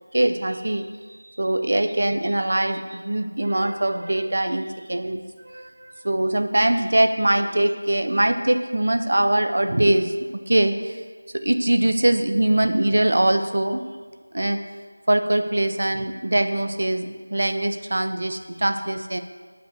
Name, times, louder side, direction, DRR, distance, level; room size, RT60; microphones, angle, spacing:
voice 1, 0.1-10.1 10.5-11.0 11.3-13.8 14.3-14.6 15.1-19.2, right 1 dB, 50° right, 8 dB, 0.6 m, -22 dB
6.5 x 5.2 x 6.4 m, 1.5 s
figure-of-eight pair, 170°, 0 cm